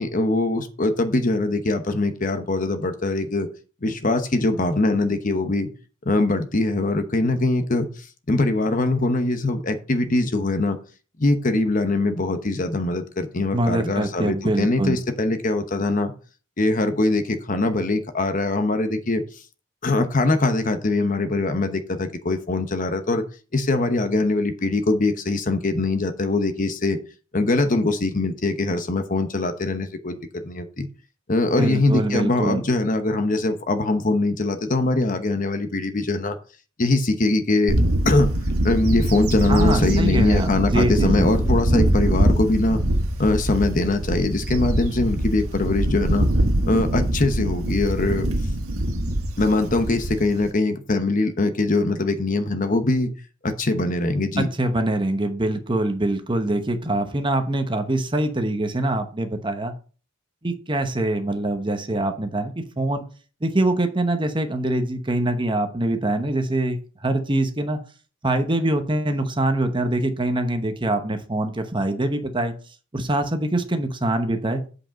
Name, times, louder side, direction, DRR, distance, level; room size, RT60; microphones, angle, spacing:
voice 1, 0.0-3.5 3.8-5.7 6.0-10.8 11.2-16.1 16.6-19.2 19.8-23.2 23.5-27.0 27.3-30.9 31.3-36.4 36.8-37.8 38.0-38.3 38.6-42.8 43.2-46.3 46.7-48.3 49.4-53.1 53.4-54.5, left 2 dB, 40° left, 9 dB, 0.9 m, -22 dB
voice 2, 13.5-15.0 31.6-32.6 39.5-41.4 54.4-59.7 60.4-63.0 63.4-67.8 68.2-72.6 72.9-74.7, right 1 dB, 25° right, 7 dB, 0.9 m, -24 dB
Bird / Wind, 37.7-50.5, right 1 dB, 90° right, 1.5 m, -23 dB
8.5 x 5.0 x 5.2 m, 0.37 s
head